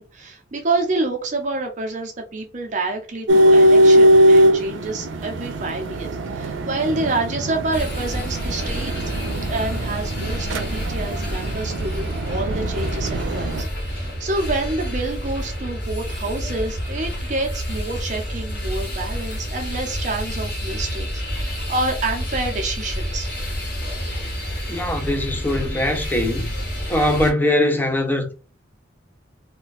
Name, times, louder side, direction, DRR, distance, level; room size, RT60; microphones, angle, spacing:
voice 1, 0.0-8.9 9.5-23.3, right 2 dB, 40° right, 0.5 m, -28 dB
sound 1, 3.3-13.6, equal, 90° right, 0.5 m, -19 dB
sound 2, 7.7-27.3, equal, 55° left, 1.3 m, -29 dB
voice 2, 24.7-26.5 26.9-28.3, left 1 dB, 10° left, 0.4 m, -21 dB
2.4 x 2.2 x 3.9 m
head